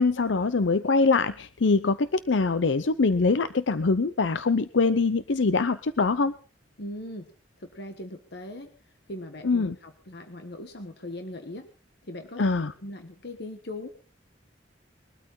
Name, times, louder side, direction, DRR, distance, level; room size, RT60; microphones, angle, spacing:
voice 1, 0.0-6.3 9.4-9.8 12.4-12.7, left 4 dB, 75° left, 13 dB, 0.7 m, -23 dB
voice 2, 6.8-7.3 7.6-8.7 9.1-11.7 12.0-13.9, left 1 dB, 60° left, 6 dB, 1.4 m, -40 dB
22.0 x 12.5 x 3.8 m, 0.38 s
head